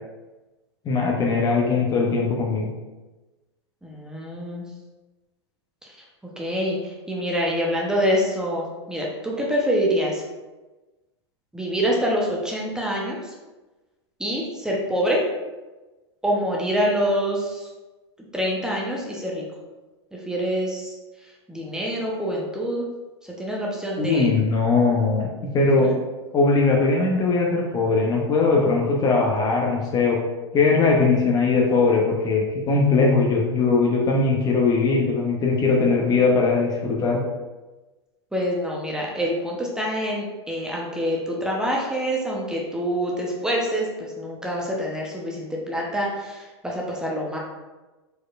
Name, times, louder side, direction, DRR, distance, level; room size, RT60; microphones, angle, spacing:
voice 1, 0.8-2.7 24.0-25.3 25.5-25.9 26.3-30.2 30.5-37.2, left 4 dB, 25° left, -1 dB, 0.8 m, -20 dB
voice 2, 3.8-4.6 6.4-10.2 11.5-13.3 14.2-15.2 16.2-17.7 18.3-19.4 20.3-20.9 21.5-22.9 23.4-24.2 25.8-25.9 38.3-47.4, equal, 5° right, -3 dB, 0.8 m, -26 dB
4.6 x 4.4 x 2.5 m, 1.2 s
hypercardioid pair, 100°, 15 cm